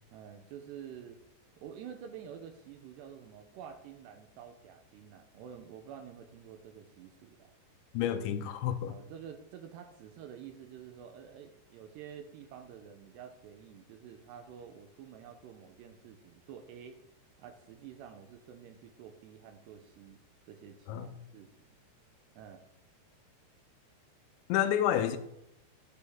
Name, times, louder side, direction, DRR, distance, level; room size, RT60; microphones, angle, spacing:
voice 1, 0.1-1.2 1.6-7.6 8.9-17.0 17.4-20.2 20.5-21.8 22.4-22.6, right 8 dB, 80° right, 2.7 m, -49 dB
voice 2, 7.9-9.0 20.9-21.1 24.5-25.2, left 10 dB, 85° left, 2.9 m, -29 dB
12.0 x 9.3 x 3.7 m
omnidirectional pair, 5.3 m